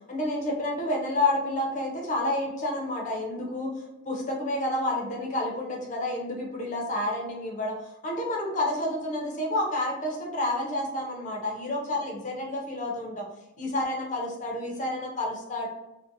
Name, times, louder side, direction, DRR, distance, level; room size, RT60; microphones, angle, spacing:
voice 1, 0.1-13.2 13.6-15.7, left 1 dB, 35° left, -1 dB, 0.6 m, -29 dB
2.6 x 2.1 x 2.5 m, 0.96 s
head